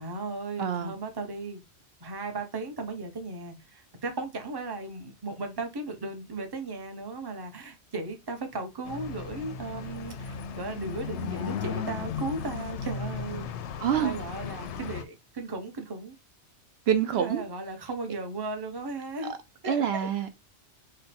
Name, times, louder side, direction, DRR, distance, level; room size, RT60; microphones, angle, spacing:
voice 1, 0.0-1.6 2.0-13.5 13.9-16.1 17.1-19.3 19.6-20.1, right 3 dB, 25° right, 0.8 m, -36 dB
voice 2, 0.6-0.9 13.8-14.2 16.9-17.4 19.6-20.3, right 9 dB, 70° right, 0.8 m, -26 dB
sound 1, 8.9-15.0, left 7 dB, 85° left, 0.9 m, -36 dB
5.2 x 2.2 x 4.2 m
omnidirectional pair, 1.1 m